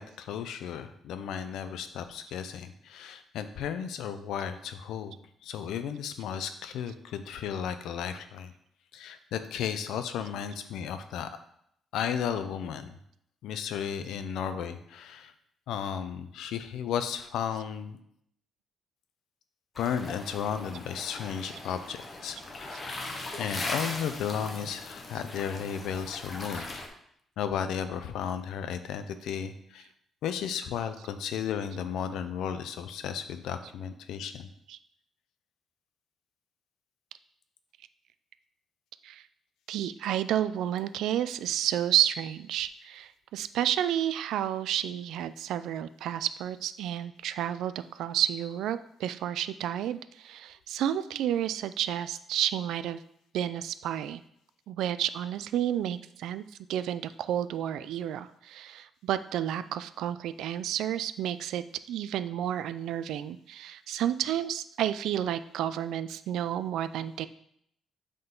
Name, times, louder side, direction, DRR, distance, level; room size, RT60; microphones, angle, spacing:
voice 1, 0.0-5.1 5.4-8.5 8.9-11.3 11.9-13.0 13.4-15.3 15.7-18.0 19.8-22.9 23.4-26.8 27.4-29.9 30.2-34.5, left 8 dB, 80° left, 10 dB, 0.5 m, -34 dB
sound 1, 19.7-26.9, left 2 dB, 25° left, 0.8 m, -39 dB
voice 2, 39.7-53.0 53.3-54.2 54.7-56.4 56.7-67.3, right 11 dB, 85° right, 13 dB, 0.3 m, -31 dB
7.9 x 3.8 x 3.8 m, 0.72 s
cardioid pair, 160°, 0 cm